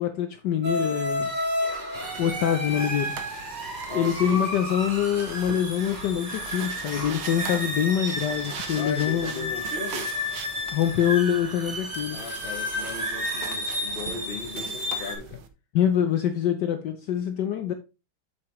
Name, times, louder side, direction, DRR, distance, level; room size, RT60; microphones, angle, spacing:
voice 1, 0.0-1.3 2.2-3.1 3.9-9.5 10.7-12.3 15.7-17.7, left 9 dB, 65° left, 1.2 m, -25 dB
sound 1, 0.6-15.1, left 1 dB, 20° right, 2.2 m, -31 dB
sound 2, 1.9-15.5, right 7 dB, 85° right, 1.8 m, -42 dB
voice 2, 3.9-4.4 8.8-10.1 12.1-15.4, left 4 dB, 30° left, 1.2 m, -37 dB
7.6 x 7.5 x 3.1 m
omnidirectional pair, 2.2 m